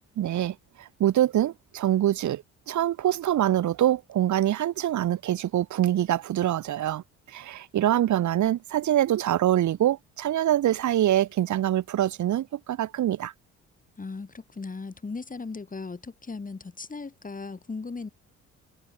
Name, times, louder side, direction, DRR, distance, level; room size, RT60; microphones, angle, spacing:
voice 1, 0.2-7.0 7.3-13.3, right 12 dB, 70° right, 2.4 m, -25 dB
voice 2, 14.0-18.1, left 4 dB, 25° left, 7.7 m, -37 dB
cardioid pair, 90°, 30 cm